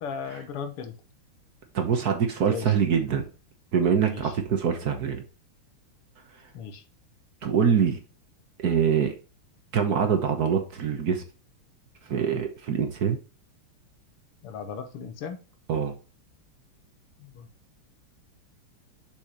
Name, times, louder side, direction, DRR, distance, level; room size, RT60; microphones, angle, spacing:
voice 1, 0.0-0.9 2.4-2.7 4.1-4.3 6.5-6.8 14.4-15.4 17.2-17.5, left 6 dB, 85° left, 2.0 m, -36 dB
voice 2, 1.7-3.2 3.7-5.2 7.4-8.0 8.6-9.1 9.7-11.2 12.1-13.2 15.7-16.0, right 7 dB, 55° right, 1.4 m, -24 dB
6.6 x 6.2 x 3.0 m
omnidirectional pair, 2.4 m